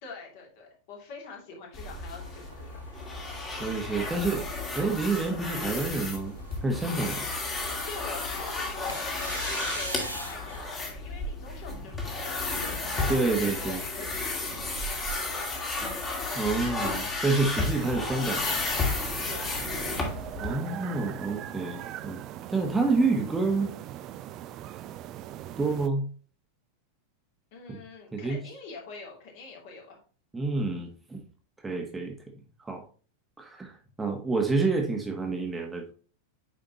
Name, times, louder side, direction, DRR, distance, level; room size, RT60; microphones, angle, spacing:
voice 1, 0.0-2.8 7.9-10.0 10.3-12.5 13.2-15.6 19.3-19.5 27.5-30.0, left 4 dB, 50° left, -1 dB, 2.8 m, -45 dB
sound 1, 1.7-20.5, left 3 dB, 20° left, 2.1 m, -33 dB
sound 2, 2.2-4.8 5.3-5.4 6.1-6.8 8.9-10.6 12.5-15.4, right 1 dB, 85° right, 0.9 m, -43 dB
voice 2, 3.6-4.4 4.7-6.3 6.6-7.2 13.1-13.8 16.3-18.5 20.4-22.2 22.5-23.7 25.6-26.1 28.1-28.4 30.3-31.2 31.6-32.1 32.6-32.8 33.4-35.9, right 3 dB, 10° right, 2 dB, 1.3 m, -28 dB
sound 3, 17.7-25.9, right 12 dB, 35° right, 0.5 m, -41 dB
9.0 x 4.9 x 2.9 m, 0.38 s
figure-of-eight pair, 90°, 0 cm